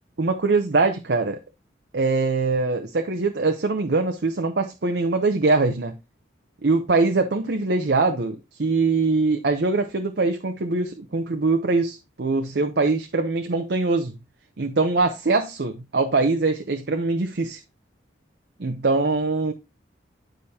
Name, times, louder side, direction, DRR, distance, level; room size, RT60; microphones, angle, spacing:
voice 1, 0.2-1.4 1.9-6.0 6.6-14.2 14.6-17.6 18.6-19.5, right 3 dB, 65° right, 0.7 m, -22 dB
9.8 x 5.0 x 2.8 m
head